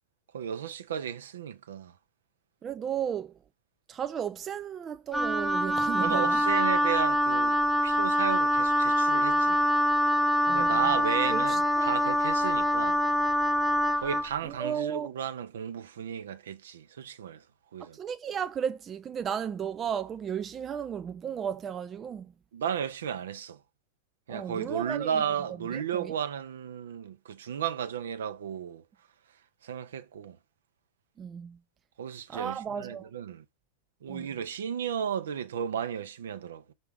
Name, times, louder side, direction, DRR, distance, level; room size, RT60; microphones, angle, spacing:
voice 1, 0.3-1.9 6.0-9.6 10.5-13.0 14.0-17.4 17.7-18.0 22.5-23.6 24.3-28.8 29.6-30.4 32.0-33.4 34.0-36.7, right 8 dB, 65° right, 0.7 m, -34 dB
voice 2, 2.6-3.4 3.9-6.4 10.5-12.0 14.4-15.1 17.9-22.3 24.3-25.2 25.7-26.1 31.2-31.6 32.3-33.1 34.1-34.3, right 8 dB, 25° right, 0.3 m, -34 dB
Wind instrument woodwind instrument, 5.1-14.3, equal, ahead, 0.8 m, -25 dB
5.7 x 3.3 x 5.0 m
figure-of-eight pair, 90°, 0 cm